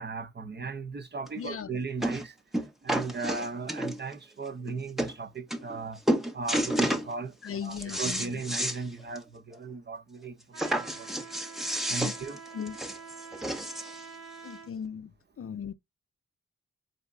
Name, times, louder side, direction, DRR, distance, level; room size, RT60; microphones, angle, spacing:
voice 1, 0.0-2.3 2.8-6.0 6.3-7.3 7.6-10.3 11.0-11.1 11.9-12.4, right 4 dB, 35° right, 0.7 m, -36 dB
sound 1, 1.3-1.4 2.0-2.3 2.5-4.1 4.7-4.8 5.0-5.1 5.5-5.8 6.1-7.1 7.5-8.8 9.2-9.3 9.6-9.7 10.6-14.0 14.8-14.9, right 1 dB, ahead, 0.7 m, -30 dB
voice 2, 1.4-1.7 7.4-8.4 12.0-12.1 12.5-12.8 14.4-15.7, left 7 dB, 50° left, 0.5 m, -37 dB
Trumpet, 10.5-14.7, right 5 dB, 50° right, 1.0 m, -46 dB
4.1 x 3.3 x 3.5 m
wide cardioid pair, 95°, 29 cm